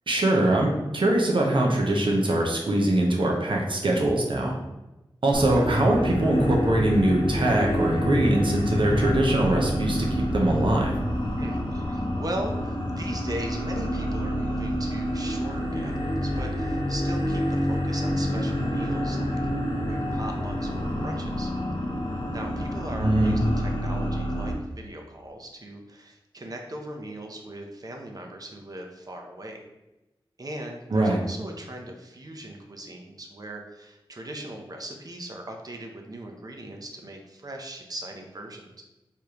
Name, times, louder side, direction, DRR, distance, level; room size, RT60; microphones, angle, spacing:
voice 1, 0.1-4.6 5.2-10.0 10.3-10.9 23.0-23.4 30.9-31.2, right 1 dB, 60° right, -1 dB, 1.0 m, -22 dB
sound 1, 5.3-24.5, equal, 60° left, 0.9 m, -27 dB
voice 2, 5.4-5.7 11.3-19.4 19.9-21.5 22.3-29.6 30.4-38.8, right 1 dB, 40° right, 2 dB, 0.8 m, -39 dB
4.8 x 3.4 x 3.0 m, 0.99 s
wide cardioid pair, 75°, 9 cm